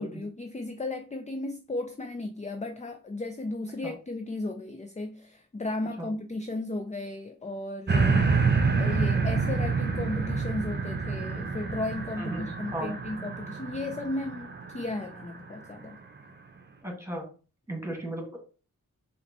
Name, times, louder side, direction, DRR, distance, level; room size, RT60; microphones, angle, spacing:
voice 1, 0.0-16.0, left 2 dB, 20° left, 0.5 m, -35 dB
sound 1, 7.9-15.3 15.8-15.9, right 4 dB, 30° right, 0.8 m, -27 dB
voice 2, 12.2-12.9 16.8-17.3 17.7-18.4, right 1 dB, 10° right, 1.8 m, -35 dB
5.0 x 3.0 x 3.0 m
cardioid pair, 45°, 33 cm